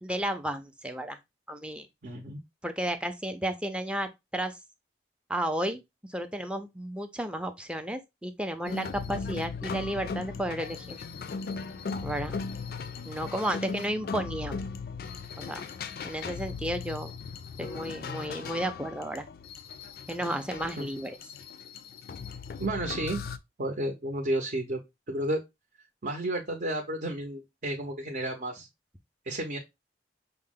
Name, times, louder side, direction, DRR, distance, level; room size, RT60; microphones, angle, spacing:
voice 1, 0.0-1.2 1.5-1.9 2.6-4.6 5.3-5.8 6.1-11.0 12.0-12.3 13.1-14.6 15.4-15.6 16.0-17.1 17.6-19.3 20.1-21.2, right 1 dB, 5° right, 0.4 m, -33 dB
voice 2, 2.0-2.4 20.8-20.9 22.6-23.2 23.6-24.8 25.1-25.4 26.0-28.7 29.2-29.6, right 1 dB, 50° right, 0.7 m, -32 dB
sound 1, 8.6-23.4, left 5 dB, 55° left, 0.4 m, -38 dB
5.4 x 2.1 x 3.5 m
head